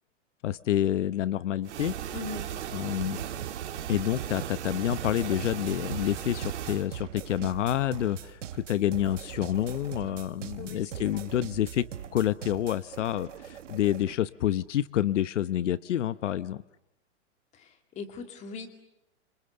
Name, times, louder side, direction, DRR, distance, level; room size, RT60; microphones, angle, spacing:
voice 1, 0.4-1.9 2.7-3.2 3.9-11.9 12.1-16.6, left 12 dB, 75° left, 16 dB, 0.9 m, -28 dB
sound 1, 1.6-6.9, right 10 dB, 65° right, 3.0 m, -36 dB
voice 2, 2.1-2.5 10.6-11.2 17.6-17.7 18.0-18.7, left 4 dB, 20° left, 7 dB, 2.4 m, -40 dB
sound 2, 3.1-14.2, right 9 dB, 85° right, 1.9 m, -42 dB
30.0 x 26.5 x 6.9 m, 0.88 s
hypercardioid pair, 165°, 36 cm